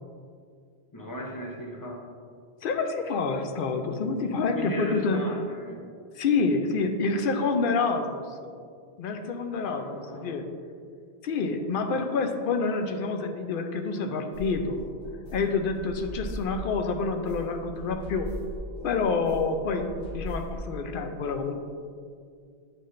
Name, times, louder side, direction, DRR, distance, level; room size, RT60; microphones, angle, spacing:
voice 1, 0.9-2.1 4.5-5.9 9.6-10.4, left 1 dB, 20° left, -1 dB, 0.7 m, -36 dB
voice 2, 2.6-5.2 6.2-8.5 9.0-10.4 11.2-14.8 15.3-18.3 18.8-21.6, left 4 dB, 60° left, 5 dB, 0.7 m, -28 dB
sound 1, 14.3-20.7, equal, 85° left, 2.0 m, -39 dB
8.5 x 3.9 x 3.1 m, 2.2 s
omnidirectional pair, 1.1 m